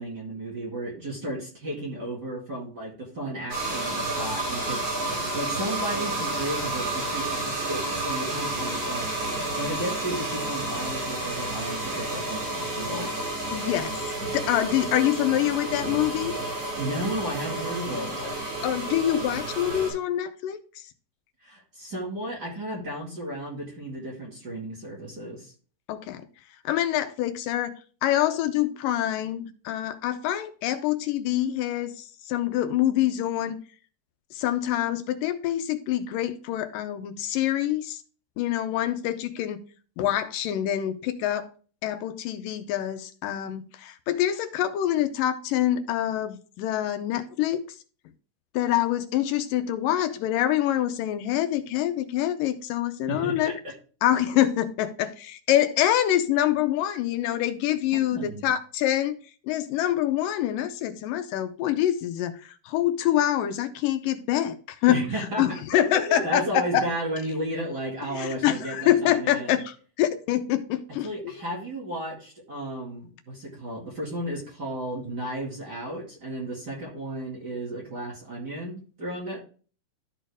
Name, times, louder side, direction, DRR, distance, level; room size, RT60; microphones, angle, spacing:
voice 1, 0.0-9.3 9.6-13.1 16.5-18.2 21.4-25.5 53.1-53.7 58.1-58.5 64.9-69.5 71.0-79.4, right 1 dB, 35° right, 2.1 m, -34 dB
sound 1, 3.5-19.9, right 2 dB, 55° right, 5.2 m, -30 dB
voice 2, 13.5-16.3 18.2-18.3 18.6-20.6 25.9-26.2 26.7-27.7 28.0-33.6 34.3-38.0 38.4-39.6 40.0-41.5 41.8-47.6 48.5-53.5 54.0-59.2 59.4-65.0 65.4-66.8 68.1-71.3, left 12 dB, 85° left, 2.3 m, -26 dB
13.0 x 4.4 x 3.4 m
omnidirectional pair, 3.9 m